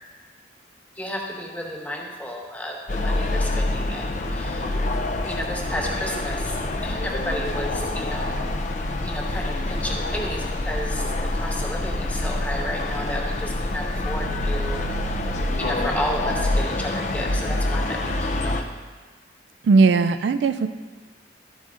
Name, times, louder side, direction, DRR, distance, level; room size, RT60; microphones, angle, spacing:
voice 1, 1.0-4.7 5.2-8.4 9.0-15.3 15.6-18.7, equal, 10° left, 0 dB, 0.9 m, -32 dB
sound 1, 2.9-18.6, left 1 dB, 40° left, 0.5 m, -26 dB
voice 2, 19.6-20.7, right 4 dB, 75° right, 11 dB, 0.3 m, -18 dB
12.0 x 8.0 x 2.5 m, 1.4 s
head